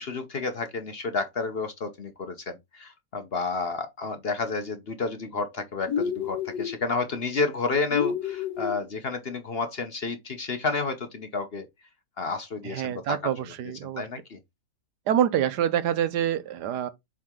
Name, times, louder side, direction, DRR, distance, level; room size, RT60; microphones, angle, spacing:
voice 1, 0.0-11.7 12.2-13.3 13.8-14.4, left 4 dB, 45° left, 0.9 m, -31 dB
sound 1, 5.9-6.8 7.9-8.8, left 7 dB, 80° left, 1.3 m, -29 dB
voice 2, 12.6-14.1 15.1-16.9, right 10 dB, 85° right, 1.4 m, -26 dB
7.5 x 3.8 x 3.7 m
omnidirectional pair, 1.7 m